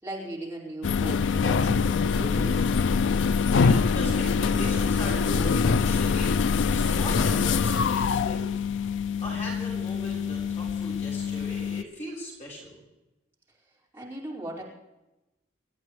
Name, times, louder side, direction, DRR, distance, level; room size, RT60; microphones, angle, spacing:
voice 1, 0.0-2.7 13.9-14.6, right 1 dB, 10° right, -6 dB, 5.0 m, -38 dB
sound 1, 0.8-11.8, left 5 dB, 75° left, 0.4 m, -24 dB
voice 2, 3.6-6.4 6.7-8.5 9.2-12.8, equal, 35° left, -5 dB, 5.6 m, -38 dB
28.0 x 14.0 x 3.2 m, 0.98 s
head